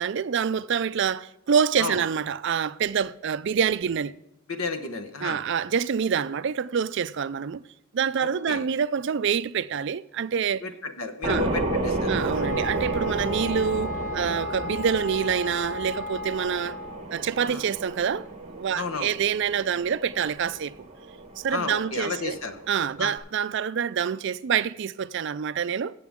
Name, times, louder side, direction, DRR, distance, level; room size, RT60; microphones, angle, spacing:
voice 1, 0.0-4.1 5.2-7.6 7.9-10.6 11.2-11.5 12.1-16.8 17.1-18.3 18.6-20.7 21.4-22.4 22.7-25.9, right 7 dB, 55° right, 0.4 m, -26 dB
voice 2, 4.5-5.4 8.2-8.6 10.6-12.5 17.5-17.6 18.7-19.1 21.5-22.6 23.0-23.1, left 4 dB, 75° left, 1.1 m, -32 dB
sound 1, 11.2-23.2, right 2 dB, 30° right, 1.2 m, -32 dB
sound 2, 12.3-17.0, left 3 dB, 40° left, 4.6 m, -35 dB
16.5 x 6.9 x 3.6 m
head